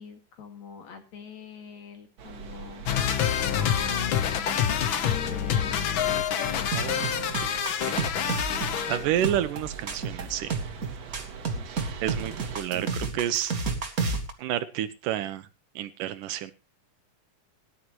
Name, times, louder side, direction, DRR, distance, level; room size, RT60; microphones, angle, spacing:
voice 1, 0.0-2.9 3.5-6.0 6.4-7.0 11.5-12.0, left 6 dB, 60° left, 5 dB, 3.4 m, -43 dB
sound 1, 2.2-12.6, right 6 dB, 55° right, 2.6 m, -43 dB
sound 2, 2.9-9.0, left 9 dB, 85° left, 1.1 m, -27 dB
sound 3, 6.7-14.3, right 4 dB, 35° right, 1.5 m, -31 dB
voice 2, 6.7-7.6 7.9-8.0 8.9-10.6 12.0-13.5 14.4-15.5 15.8-16.5, right 11 dB, 80° right, 12 dB, 2.6 m, -30 dB
18.0 x 11.0 x 3.1 m, 0.28 s
omnidirectional pair, 3.7 m